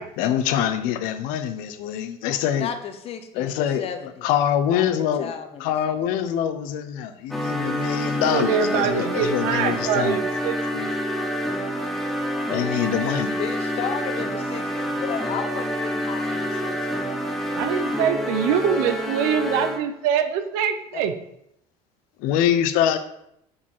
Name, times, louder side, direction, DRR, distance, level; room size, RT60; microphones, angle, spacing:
voice 1, 0.2-2.7 3.3-3.9 4.2-5.3 5.6-10.2 12.5-13.4 22.2-23.0, left 10 dB, 70° left, 10 dB, 0.8 m, -24 dB
voice 2, 2.5-4.2 4.7-6.0 13.4-17.0 20.9-21.1, left 7 dB, 40° left, 8 dB, 0.9 m, -34 dB
sound 1, 7.3-20.0, equal, ahead, 0.8 m, -27 dB
voice 3, 8.2-10.9 17.5-21.1, right 8 dB, 80° right, 10 dB, 0.8 m, -24 dB
6.5 x 5.2 x 5.5 m, 0.76 s
cardioid pair, 150°, 15 cm